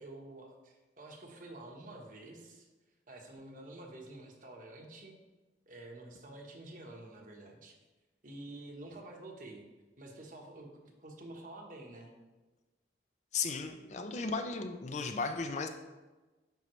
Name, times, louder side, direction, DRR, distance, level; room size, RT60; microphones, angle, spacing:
voice 1, 0.0-2.7 3.1-5.1 5.7-7.8 8.2-9.6 10.0-12.1, right 2 dB, 50° right, 1 dB, 1.1 m, -49 dB
voice 2, 13.3-15.7, left 4 dB, 40° left, 7 dB, 0.5 m, -35 dB
9.1 x 5.7 x 3.1 m, 1.2 s
head